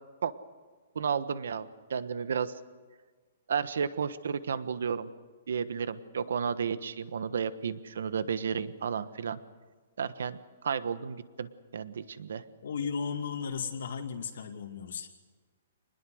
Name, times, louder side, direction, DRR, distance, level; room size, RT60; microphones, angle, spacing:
voice 1, 0.9-2.5 3.5-5.1 5.5-9.4 10.0-12.4, right 6 dB, 70° right, 13 dB, 1.3 m, -32 dB
voice 2, 12.6-15.1, left 6 dB, 65° left, 2 dB, 2.2 m, -35 dB
27.0 x 20.5 x 6.5 m, 1.4 s
hypercardioid pair, 175°, 0 cm